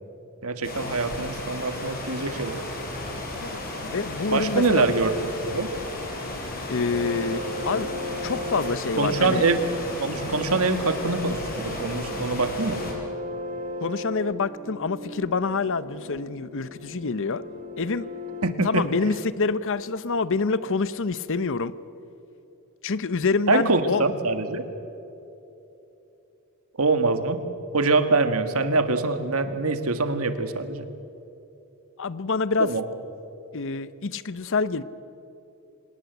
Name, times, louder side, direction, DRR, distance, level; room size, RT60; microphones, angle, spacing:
voice 1, 0.4-2.6 4.3-5.1 5.5-5.7 9.0-9.6 10.0-12.8 18.4-18.9 23.5-24.6 26.8-27.4 27.7-30.9 32.6-32.8, right 3 dB, 70° right, 9 dB, 1.8 m, -24 dB
sound 1, 0.6-12.9, left 2 dB, 45° left, 5.4 m, -34 dB
voice 2, 3.4-4.9 6.7-7.9 8.2-9.4 13.8-17.4 17.8-18.1 18.6-21.7 22.8-24.1 32.0-32.7 33.5-34.8, left 4 dB, 60° left, 16 dB, 0.8 m, -26 dB
sound 2, 6.9-18.5, left 1 dB, 40° right, 1.3 m, -37 dB
26.5 x 19.0 x 8.2 m, 2.9 s
head